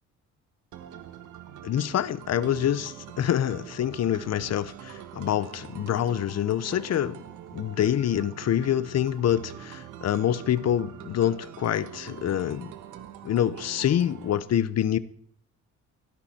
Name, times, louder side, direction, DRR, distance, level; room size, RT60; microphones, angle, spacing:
sound 1, 0.7-14.4, right 11 dB, 80° right, 1.4 m, -44 dB
voice 1, 1.6-7.2 7.5-12.7 13.2-15.0, left 10 dB, 60° left, 0.9 m, -26 dB
16.5 x 13.0 x 4.4 m
cardioid pair, 90°, 30 cm